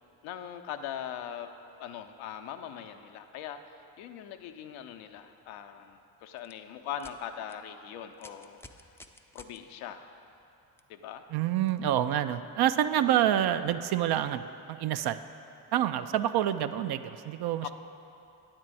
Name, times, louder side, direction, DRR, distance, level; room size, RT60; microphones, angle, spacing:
voice 1, 0.2-1.5 1.8-8.6 9.3-10.1 10.9-11.2 13.1-13.3 17.6-17.7, left 9 dB, 75° left, 6 dB, 0.7 m, -41 dB
sound 1, 6.4-6.5 7.0-7.1 7.5-7.6 8.1-9.6 10.8-10.9 11.7-11.8, left 2 dB, 5° left, 0.4 m, -51 dB
voice 2, 11.3-15.2 15.7-17.7, right 11 dB, 55° right, 11 dB, 0.5 m, -27 dB
9.4 x 4.5 x 7.6 m, 2.7 s
hypercardioid pair, 50°, 49 cm